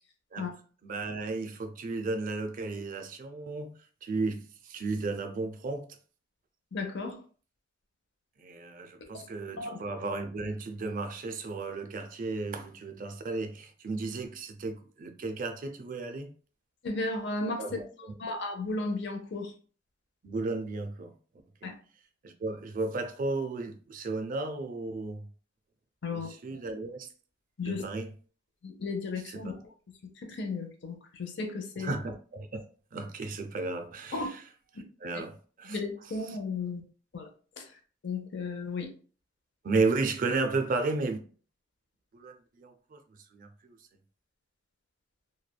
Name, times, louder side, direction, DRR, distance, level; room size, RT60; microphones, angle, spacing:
voice 1, 0.8-6.0 8.4-16.3 17.6-17.8 20.2-21.1 21.6-21.7 22.2-25.2 26.1-27.1 27.6-28.1 29.3-29.4 31.8-32.6 32.9-34.4 35.0-35.8 36.3-36.4 39.6-41.2 42.1-43.0 43.3-43.8, right 3 dB, 45° right, 0.4 m, -34 dB
voice 2, 6.7-7.2 9.1-9.2 9.6-9.8 16.8-17.8 18.2-19.5 21.6-21.7 26.0-26.6 27.6-27.8 28.6-29.5 30.2-31.9 34.1-34.3 34.7-34.8 35.1-35.2 35.7-36.8 37.1-37.3 37.6-37.7 38.0-38.9, left 3 dB, 65° left, 0.6 m, -34 dB
3.2 x 2.1 x 2.2 m
head